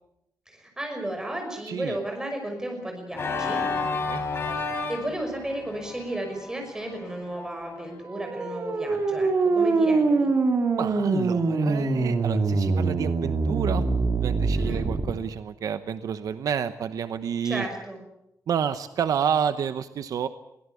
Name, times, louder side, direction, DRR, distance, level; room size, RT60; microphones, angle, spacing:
voice 1, 0.5-3.6 4.9-10.3 14.5-14.9 17.4-18.0, right 1 dB, 10° right, 3 dB, 5.9 m, -33 dB
voice 2, 1.7-2.0 4.0-4.2 8.9-9.0 10.7-13.8 14.1-17.7 18.5-20.3, right 8 dB, 70° right, 11 dB, 0.9 m, -29 dB
Organ, 3.1-8.0, left 4 dB, 40° left, 4.2 m, -32 dB
sound 1, 8.0-15.1, right 3 dB, 40° right, 2.9 m, -24 dB
23.0 x 17.0 x 8.4 m, 0.83 s
wide cardioid pair, 175°, 6 cm